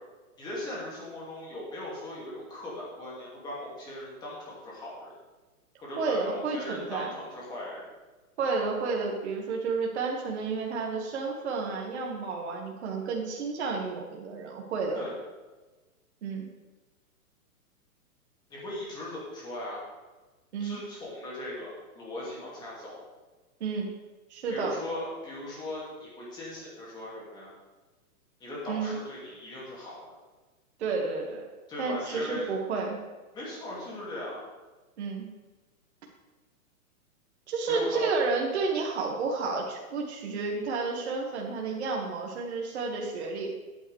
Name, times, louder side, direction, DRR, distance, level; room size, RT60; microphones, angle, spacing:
voice 1, 0.4-5.1 5.8-7.9 14.9-15.1 18.5-19.8 20.6-23.0 24.5-27.5 28.4-30.2 31.7-32.5 33.3-34.4 37.6-38.1, left 1 dB, 10° left, -5 dB, 2.2 m, -38 dB
voice 2, 6.0-7.1 8.4-15.0 16.2-16.5 20.5-20.8 23.6-23.9 24.3-24.8 28.7-28.9 30.8-31.4 31.8-33.0 35.0-35.3 37.5-43.5, right 4 dB, 50° right, -1 dB, 1.7 m, -31 dB
13.0 x 9.0 x 3.3 m, 1.2 s
hypercardioid pair, 170°, 44 cm